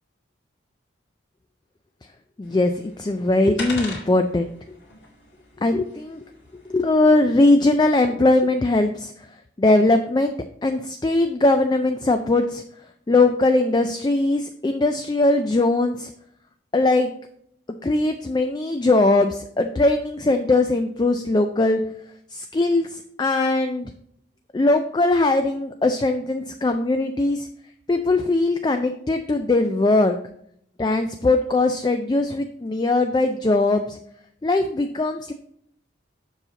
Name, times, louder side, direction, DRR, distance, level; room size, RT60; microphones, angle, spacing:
sound 1, 2.4-7.9, left 2 dB, 65° left, 2.1 m, -40 dB
voice 1, 2.4-2.7 3.0-4.8 5.6-6.2 6.7-9.3 9.6-10.3 10.6-12.6 13.1-16.1 16.7-17.1 17.8-21.8 22.3-23.9 24.5-27.5 27.9-30.2 30.8-34.0 34.4-35.3, left 2 dB, 20° left, 7 dB, 0.3 m, -20 dB
7.2 x 5.7 x 3.9 m, 0.69 s
head